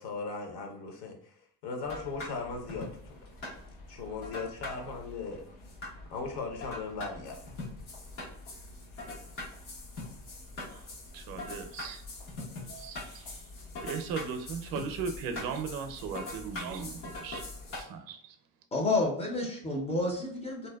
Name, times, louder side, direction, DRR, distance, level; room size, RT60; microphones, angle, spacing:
voice 1, 0.0-3.2 3.9-5.4 6.1-7.4, left 4 dB, 60° left, 3 dB, 0.8 m, -38 dB
sound 1, 1.8-17.8, left 2 dB, 90° left, 1.1 m, -43 dB
voice 2, 11.1-12.0 12.7-13.4 13.8-17.4 17.7-18.3, right 6 dB, 50° right, 6 dB, 0.5 m, -37 dB
voice 3, 18.7-20.7, left 2 dB, 15° left, 0 dB, 0.4 m, -30 dB
2.7 x 2.1 x 2.2 m, 0.64 s
supercardioid pair, 105°, 46 cm